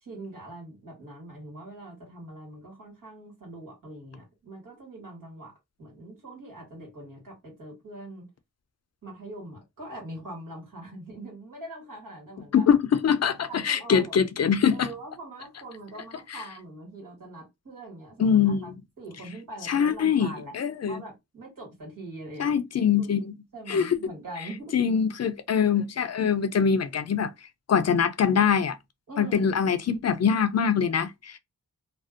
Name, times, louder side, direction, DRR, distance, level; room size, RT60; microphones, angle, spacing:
voice 1, 0.0-5.5 5.8-8.3 9.0-12.6 13.5-14.2 14.7-18.7 19.0-20.5 20.9-22.6 23.0-23.2 23.5-24.7 29.1-29.5, right 1 dB, 85° right, 1.5 m, -42 dB
voice 2, 12.5-14.9 16.3-16.4 18.2-18.8 19.6-21.0 22.4-23.3 23.7-24.1 24.7-27.3 27.7-28.8 29.2-31.4, left 7 dB, 55° left, 0.4 m, -23 dB
2.5 x 2.1 x 2.4 m
cardioid pair, 45°, 32 cm